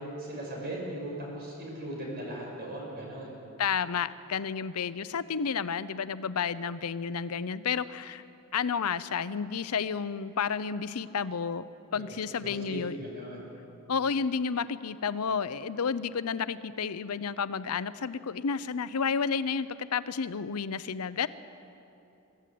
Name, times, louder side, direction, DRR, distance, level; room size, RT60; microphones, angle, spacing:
voice 1, 0.2-3.3 11.9-12.0 12.4-13.4, right 1 dB, 45° right, -2 dB, 6.2 m, -38 dB
voice 2, 3.6-8.2 8.5-11.7 11.9-13.0 13.9-21.3, left 6 dB, 85° left, 15 dB, 0.6 m, -31 dB
23.0 x 14.0 x 8.5 m, 2.9 s
head